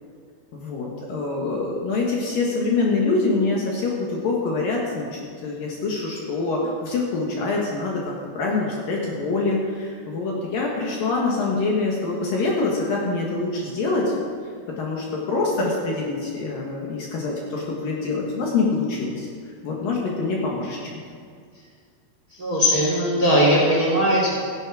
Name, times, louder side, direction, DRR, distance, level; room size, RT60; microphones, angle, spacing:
voice 1, 0.5-14.1 14.8-19.3 19.6-21.0, left 3 dB, 60° left, -2 dB, 2.8 m, -25 dB
voice 2, 22.4-24.3, equal, 30° right, -4 dB, 1.9 m, -19 dB
13.5 x 10.5 x 4.9 m, 2.2 s
omnidirectional pair, 5.1 m